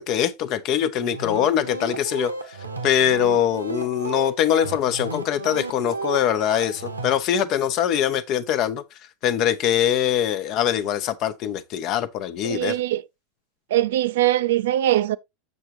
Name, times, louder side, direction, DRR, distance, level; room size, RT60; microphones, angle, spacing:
voice 1, 0.0-2.3 2.8-8.8 9.2-12.8, left 10 dB, 45° left, 0.8 m, -23 dB
sound 1, 1.0-7.1, right 3 dB, 90° right, 1.1 m, -33 dB
voice 2, 12.4-13.0 13.7-15.2, right 14 dB, 65° right, 0.4 m, -21 dB
7.2 x 6.7 x 2.9 m
figure-of-eight pair, 85°, 0 cm